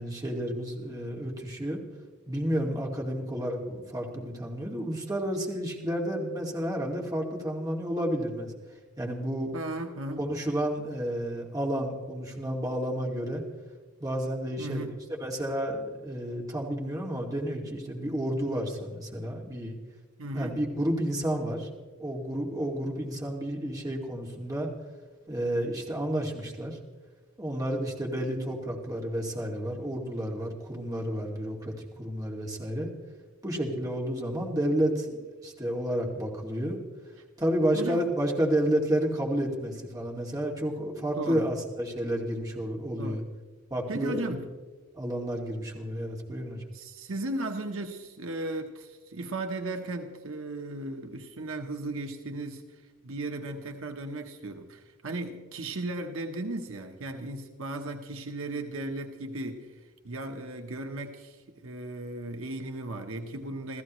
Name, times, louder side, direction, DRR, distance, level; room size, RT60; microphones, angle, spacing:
voice 1, 0.0-1.8 2.3-8.5 9.0-9.5 10.2-13.4 14.0-14.9 15.2-19.8 20.3-21.7 22.0-24.7 25.3-26.8 27.4-32.9 33.4-36.8 37.4-43.2 43.7-44.3 44.9-46.6, right 1 dB, 15° right, -1 dB, 2.3 m, -31 dB
voice 2, 9.5-10.3 14.6-15.0 20.2-20.5 37.7-38.1 41.2-41.5 43.0-43.2 43.9-44.5 46.7-63.8, right 2 dB, 65° right, 5 dB, 1.2 m, -36 dB
28.0 x 15.5 x 3.2 m, 1.3 s
head